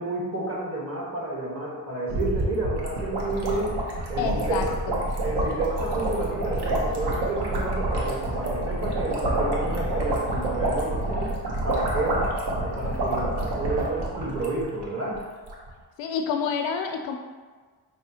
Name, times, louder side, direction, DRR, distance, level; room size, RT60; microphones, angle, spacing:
voice 1, 0.0-3.8 4.1-4.8 5.2-11.3 11.6-12.3 12.6-15.2, right 2 dB, 30° right, -4 dB, 1.4 m, -30 dB
sound 1, 2.1-14.8 15.1-15.2 15.4-15.7, right 1 dB, 55° right, 1.0 m, -28 dB
voice 2, 4.2-5.1 16.0-17.2, left 6 dB, 70° left, 5 dB, 0.5 m, -28 dB
5.6 x 2.1 x 2.8 m, 1.4 s
supercardioid pair, 55°, 48 cm